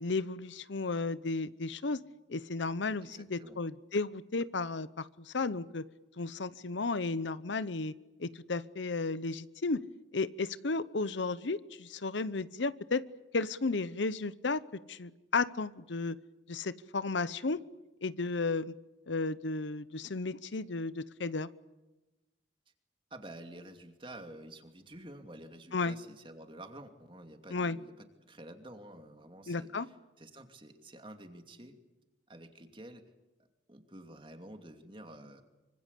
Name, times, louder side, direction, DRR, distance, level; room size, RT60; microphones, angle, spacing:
voice 1, 0.0-2.0 2.3-5.8 6.2-7.9 8.2-9.8 10.1-13.0 13.3-14.6 14.9-16.2 16.5-17.6 18.0-18.8 19.1-21.5 25.7-26.0 27.5-27.8 29.5-29.9, left 3 dB, 75° left, 16 dB, 0.9 m, -33 dB
voice 2, 3.0-3.6 23.1-27.9 28.2-31.8 32.3-33.0 33.4-35.4, right 1 dB, 25° right, 6 dB, 2.6 m, -50 dB
25.0 x 25.0 x 8.4 m, 1.1 s
head